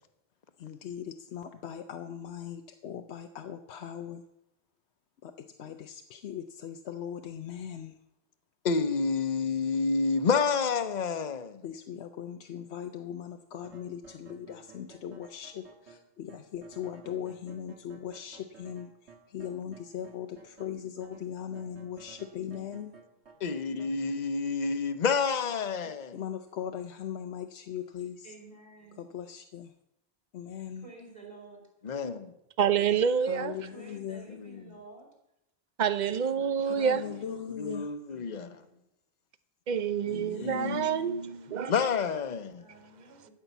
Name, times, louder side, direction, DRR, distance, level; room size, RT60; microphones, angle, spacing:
voice 1, 0.6-4.2 5.2-8.0 11.6-22.9 26.1-28.3 29.0-29.7 30.3-30.9 33.2-34.3 36.6-37.9 40.1-40.8, left 9 dB, 80° left, 1.0 m, -39 dB
voice 2, 8.6-11.6 23.4-26.1 31.8-32.3 34.3-34.6 37.6-38.6 40.4-40.9 41.5-42.6, left 5 dB, 45° left, 0.9 m, -29 dB
sound 1, 13.6-20.7 21.0-23.9, right 5 dB, 85° right, 1.8 m, -55 dB
voice 3, 22.5-23.0 28.2-29.0 30.8-31.6 33.6-35.1 38.1-38.9 42.6-43.3, right 2 dB, 30° right, 3.7 m, -51 dB
voice 4, 32.6-33.6 35.8-37.2 39.7-41.7, right 7 dB, 50° right, 0.8 m, -27 dB
14.5 x 5.7 x 8.1 m
omnidirectional pair, 1.1 m